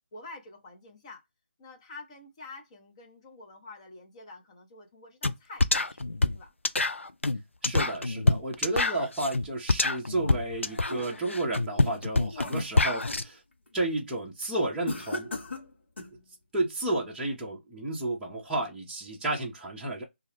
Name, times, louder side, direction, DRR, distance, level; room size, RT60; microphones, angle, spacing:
voice 1, 0.1-1.2 1.6-6.0 6.3-6.5 11.7-12.1, left 2 dB, 30° left, 0.8 m, -48 dB
sound 1, 5.2-5.3 5.6-13.2, left 2 dB, 85° left, 0.4 m, -26 dB
voice 2, 7.6-13.4 13.7-15.3 16.5-20.0, right 2 dB, 5° right, 0.7 m, -32 dB
sound 2, 10.3-11.4 11.9-13.3 13.7-14.0 14.8-16.2, left 1 dB, 60° left, 1.0 m, -39 dB
2.3 x 2.3 x 3.2 m
figure-of-eight pair, 155°, 7 cm